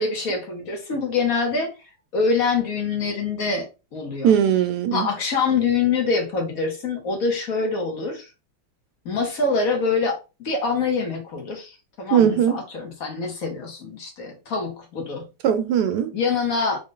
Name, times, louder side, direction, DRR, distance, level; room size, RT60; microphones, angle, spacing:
voice 1, 0.0-1.7 2.1-4.3 4.9-8.3 9.0-15.3 16.1-16.8, left 4 dB, 60° left, 1.4 m, -25 dB
voice 2, 4.2-5.1 12.1-12.6 15.4-16.1, right 9 dB, 75° right, 1.1 m, -19 dB
3.8 x 2.3 x 3.7 m
omnidirectional pair, 1.8 m